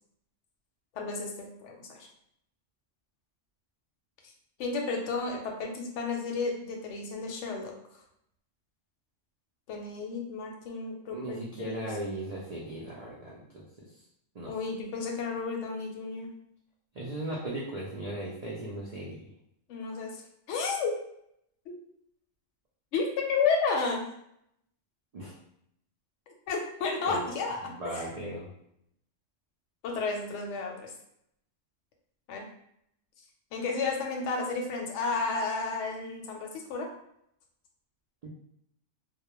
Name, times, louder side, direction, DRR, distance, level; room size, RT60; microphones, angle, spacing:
voice 1, 0.9-2.1 4.6-7.7 9.7-11.8 14.5-16.3 19.7-20.2 20.5-20.9 21.7-21.8 22.9-24.0 26.5-27.6 27.9-28.1 29.8-30.9 32.3-32.5 33.5-36.9, left 4 dB, 70° left, 1 dB, 0.8 m, -32 dB
voice 2, 11.1-13.7 14.4-14.5 16.9-19.3 25.1-25.3 27.1-27.3 27.7-28.5 38.2-38.3, right 1 dB, 85° right, -4 dB, 0.3 m, -37 dB
2.2 x 2.0 x 2.9 m, 0.74 s
omnidirectional pair, 1.3 m